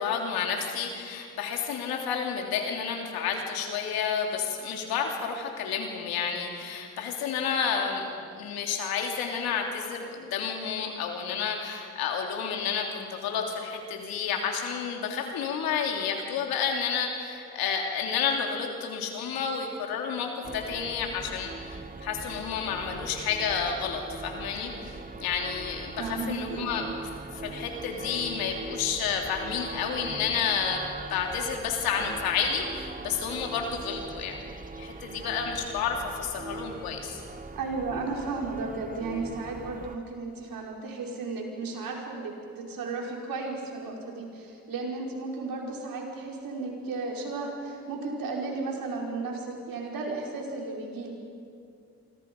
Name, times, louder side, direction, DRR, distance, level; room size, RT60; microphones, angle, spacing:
voice 1, 0.0-8.1 8.4-26.9 27.3-30.8 31.1-34.5 34.8-37.2, left 6 dB, 85° left, 2 dB, 3.3 m, -30 dB
sound 1, 20.4-40.0, right 3 dB, 25° right, 1.6 m, -41 dB
voice 2, 26.0-26.7 34.9-35.2 37.5-51.1, right 3 dB, 70° right, -1 dB, 5.3 m, -34 dB
27.5 x 24.0 x 5.5 m, 2.4 s
supercardioid pair, 55°, 35 cm